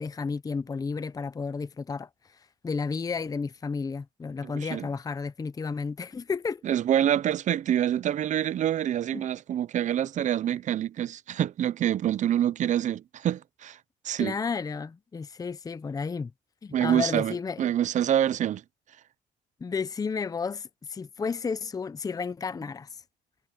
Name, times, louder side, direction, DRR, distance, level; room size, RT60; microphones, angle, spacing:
voice 1, 0.0-2.1 2.6-6.6 9.1-9.3 14.2-16.3 16.6-17.6 19.6-23.0, left 5 dB, 20° left, 0.7 m, -32 dB
voice 2, 4.4-4.9 6.6-13.8 14.0-14.4 16.7-18.6, right 10 dB, 45° right, 0.6 m, -26 dB
cardioid pair, 110°, 17 cm